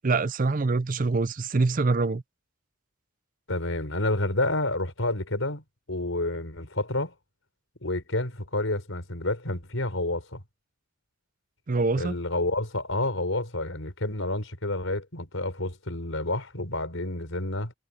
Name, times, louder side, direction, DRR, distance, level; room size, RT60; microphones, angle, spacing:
voice 1, 0.0-2.2 11.7-12.2, right 3 dB, 40° right, 0.5 m, -25 dB
voice 2, 3.5-7.1 7.8-10.4 12.0-17.7, left 2 dB, 75° left, 4.5 m, -29 dB
head